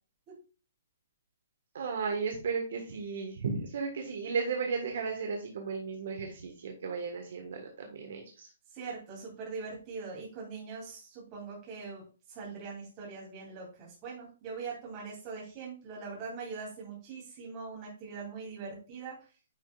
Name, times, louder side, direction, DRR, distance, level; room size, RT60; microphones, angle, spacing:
voice 1, 1.7-8.5, right 5 dB, 50° right, 2 dB, 1.5 m, -34 dB
voice 2, 8.7-12.0 12.3-19.2, right 4 dB, 20° right, -4 dB, 3.0 m, -42 dB
9.8 x 5.2 x 2.4 m, 0.35 s
hypercardioid pair, 180°, 0 cm